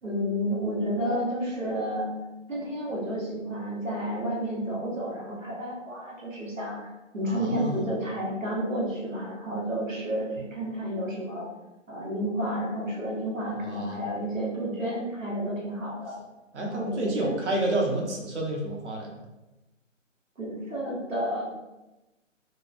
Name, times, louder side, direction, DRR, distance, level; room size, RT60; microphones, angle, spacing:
voice 1, 0.0-2.1 2.5-11.5 11.9-16.2 16.6-17.3 20.4-21.4, equal, 85° right, -4 dB, 1.2 m, -31 dB
voice 2, 7.3-7.8 13.5-14.0 16.5-19.2, right 1 dB, 65° right, -1 dB, 0.9 m, -29 dB
3.4 x 2.1 x 2.4 m, 1.0 s
figure-of-eight pair, 140°, 38 cm